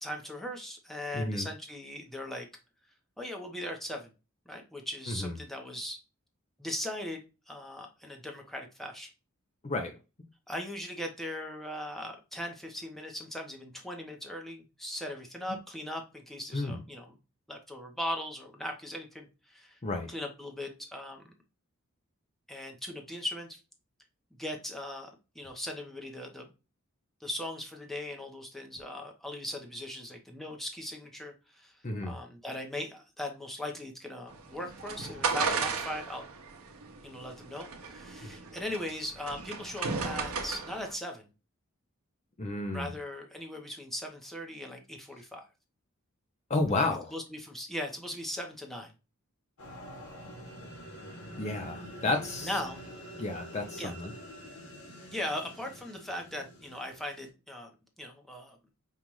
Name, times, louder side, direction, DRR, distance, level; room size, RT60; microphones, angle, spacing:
voice 1, 0.0-2.5 3.2-4.1 4.5-6.0 6.6-9.1 10.5-17.2 17.5-19.8 20.1-21.2 22.5-23.6 24.4-26.5 27.2-31.7 32.0-36.3 37.0-41.3 42.7-45.4 46.8-48.9 52.4-52.8 53.8-53.9 55.1-58.6, left 1 dB, ahead, 0.8 m, -39 dB
voice 2, 1.1-1.5 5.1-5.3 9.6-9.9 16.5-16.8 19.8-20.1 31.8-32.2 38.2-38.3 42.4-42.9 46.5-47.1 51.4-52.5 53.2-54.1 55.0-55.1, left 2 dB, 30° left, 0.6 m, -32 dB
sound 1, 34.3-40.9, right 5 dB, 85° right, 0.8 m, -35 dB
sound 2, 49.6-57.3, equal, 80° left, 1.5 m, -46 dB
5.5 x 2.4 x 3.0 m
head